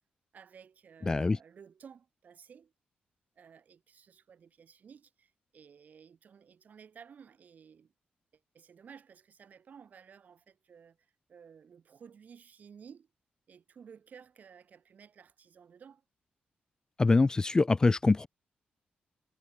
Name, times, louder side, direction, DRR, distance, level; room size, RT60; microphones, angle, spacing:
voice 1, 0.3-2.7 3.4-7.9 8.3-13.1 13.5-16.0, right 7 dB, 55° right, 7.5 m, -55 dB
voice 2, 1.1-1.4 17.0-18.3, left 3 dB, 20° left, 0.3 m, -24 dB
wide cardioid pair, 140°, 3 cm